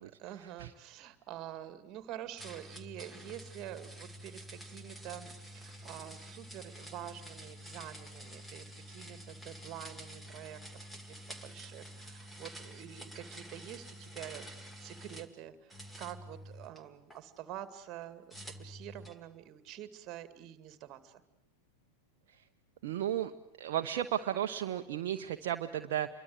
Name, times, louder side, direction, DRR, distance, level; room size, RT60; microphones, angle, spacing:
voice 1, 0.0-10.6 11.0-14.5 14.8-21.2, right 11 dB, 35° right, 12 dB, 2.3 m, -47 dB
sound 1, 2.4-15.3 15.7-17.2 18.3-19.2, equal, 5° left, 2.3 m, -49 dB
voice 2, 22.8-23.3 23.6-26.1, right 11 dB, 55° right, 6 dB, 1.0 m, -34 dB
27.5 x 23.5 x 8.0 m, 0.76 s
figure-of-eight pair, 90°, 0 cm